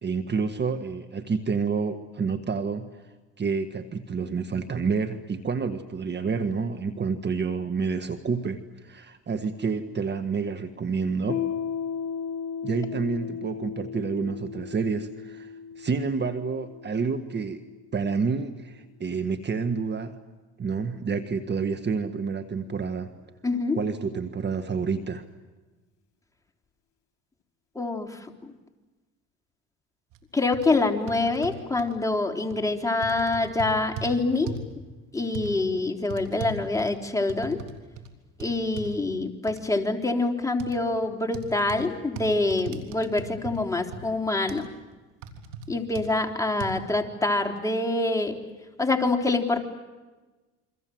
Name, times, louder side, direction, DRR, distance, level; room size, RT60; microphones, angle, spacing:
voice 1, 0.0-2.9 3.4-11.5 12.6-17.6 17.9-20.2 20.6-23.1 23.8-25.2, right 5 dB, 30° right, 9 dB, 1.7 m, -29 dB
Piano, 11.3-18.5, left 7 dB, 65° left, 1.5 m, -36 dB
voice 2, 23.4-23.8 27.8-28.5 30.3-34.6 35.1-37.6 38.4-44.7 45.7-48.4 48.8-49.6, left 2 dB, 10° left, 3 dB, 3.7 m, -26 dB
sound 1, 30.1-30.2 30.5-30.6 31.1-31.9 32.5-32.7 33.0-34.1 34.5-34.7 35.3-35.5 36.1-37.7 38.0-38.1 38.4-38.9 39.5-39.6 40.6-40.8 41.3-41.8 42.2-43.6 43.9-44.0 44.5-44.6 45.2-45.7 45.9-46.1 46.6-46.7, right 6 dB, 70° right, 3.6 m, -37 dB
29.0 x 24.5 x 7.9 m, 1.2 s
supercardioid pair, 80°, 33 cm